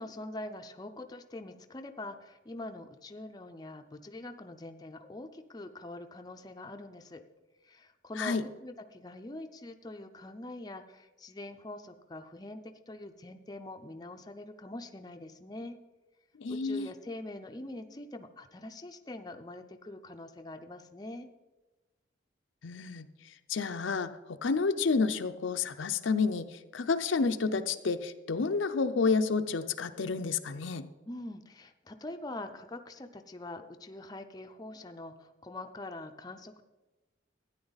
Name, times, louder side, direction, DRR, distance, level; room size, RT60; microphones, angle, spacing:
voice 1, 0.0-7.2 7.6-15.8 16.5-21.3 31.0-36.6, left 2 dB, 20° left, 6 dB, 0.5 m, -44 dB
voice 2, 16.4-16.9 22.6-23.1 23.5-30.8, left 4 dB, 75° left, 9 dB, 0.6 m, -30 dB
13.0 x 9.7 x 4.0 m, 1.1 s
head